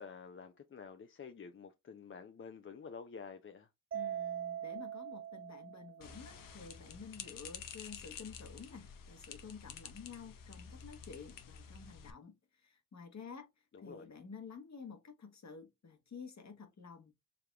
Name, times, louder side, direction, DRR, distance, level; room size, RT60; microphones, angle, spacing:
voice 1, 0.0-3.7 13.7-14.1, left 5 dB, 40° left, 0.5 m, -49 dB
voice 2, 3.9-13.5 13.8-17.1, left 5 dB, 55° left, 1.2 m, -51 dB
Mallet percussion, 3.9-6.4, right 10 dB, 40° right, 0.5 m, -42 dB
sound 1, 6.0-12.1, left 7 dB, 85° left, 0.6 m, -50 dB
4.8 x 3.4 x 2.3 m
cardioid pair, 45°, 32 cm